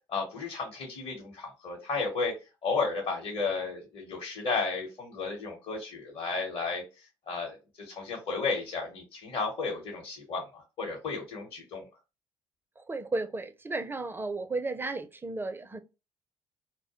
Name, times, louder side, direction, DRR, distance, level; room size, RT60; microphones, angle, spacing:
voice 1, 0.1-2.3 2.6-6.8 7.3-11.8, left 4 dB, 55° left, 0.9 m, -33 dB
voice 2, 12.8-15.8, right 3 dB, 20° right, 0.4 m, -34 dB
2.2 x 2.1 x 2.9 m
hypercardioid pair, 50°, 11 cm